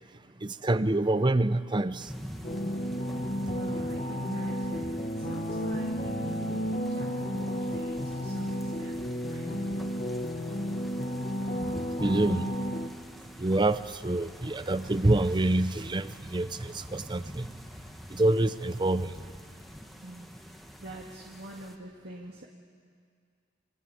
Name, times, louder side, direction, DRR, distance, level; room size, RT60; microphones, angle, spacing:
voice 1, 0.4-2.1 12.0-12.5 13.4-17.5 18.1-19.1, right 2 dB, 25° right, 14 dB, 0.7 m, -26 dB
sound 1, 2.0-21.8, equal, ahead, 1.6 m, -46 dB
sound 2, 2.4-12.9, equal, 40° left, 1.4 m, -32 dB
voice 2, 3.5-9.7 20.0-20.5 20.8-22.5, right 1 dB, 55° right, -1 dB, 1.9 m, -45 dB
27.0 x 22.5 x 8.5 m, 2.2 s
head